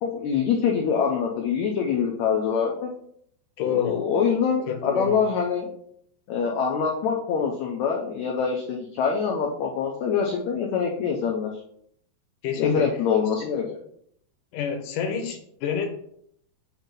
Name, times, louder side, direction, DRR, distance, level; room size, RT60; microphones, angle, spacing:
voice 1, 0.0-2.9 3.7-5.7 6.3-11.5 12.6-13.6, left 6 dB, 90° left, 0 dB, 1.6 m, -25 dB
voice 2, 3.6-4.0 4.7-5.2 12.4-13.0 13.4-13.6 14.5-15.9, left 7 dB, 75° left, 5 dB, 2.1 m, -28 dB
7.5 x 2.7 x 5.3 m, 0.69 s
omnidirectional pair, 4.2 m